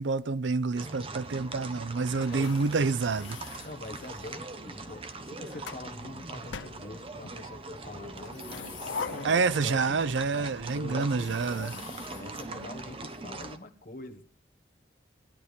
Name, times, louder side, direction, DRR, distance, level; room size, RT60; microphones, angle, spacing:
voice 1, 0.0-3.6 9.2-11.7, right 4 dB, 85° right, 0.6 m, -28 dB
sound 1, 0.7-13.6, right 2 dB, 30° right, 1.0 m, -42 dB
voice 2, 2.0-2.6 3.6-10.0 10.3-14.2, left 2 dB, 45° left, 1.5 m, -44 dB
sound 2, 2.2-4.5 5.2-5.9 6.5-7.4 8.1-10.3 10.6-10.7 11.1-13.2, left 5 dB, 90° left, 0.8 m, -43 dB
13.5 x 11.0 x 5.1 m
head